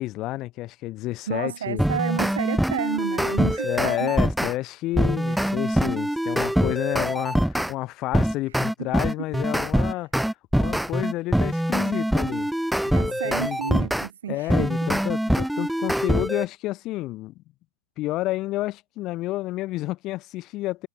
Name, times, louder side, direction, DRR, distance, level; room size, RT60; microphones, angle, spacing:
voice 1, 0.0-1.8 3.4-10.1 10.5-12.5 12.8-13.8 14.3-17.4 18.0-20.9, left 17 dB, 35° left, 3.1 m, -30 dB
voice 2, 1.3-4.2 5.3-5.4 8.8-8.9 12.9-14.7, right 9 dB, 65° right, 1.9 m, -31 dB
sound 1, 1.8-4.5 5.0-7.7 8.1-14.1 14.5-16.5, equal, ahead, 0.4 m, -24 dB
figure-of-eight pair, 90°, 0 cm